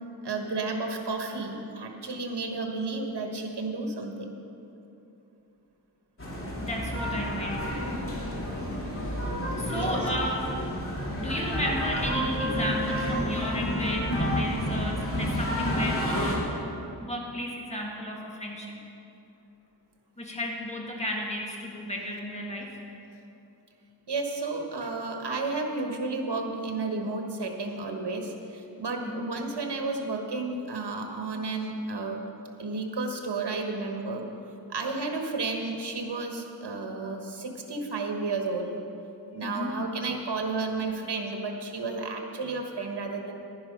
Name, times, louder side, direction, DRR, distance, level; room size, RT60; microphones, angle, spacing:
voice 1, 0.2-4.3 9.7-10.1 24.1-32.2 32.6-34.2 34.7-38.7 39.3-43.3, right 3 dB, 70° right, 3 dB, 1.5 m, -32 dB
sound 1, 6.2-16.4, equal, 30° left, 2.7 m, -30 dB
voice 2, 6.6-8.1 9.6-10.5 11.2-16.5 17.0-18.7 20.2-22.8 29.0-29.4 39.4-39.8, left 1 dB, 15° left, -2 dB, 1.9 m, -33 dB
11.0 x 10.5 x 5.5 m, 2.8 s
wide cardioid pair, 95°, 41 cm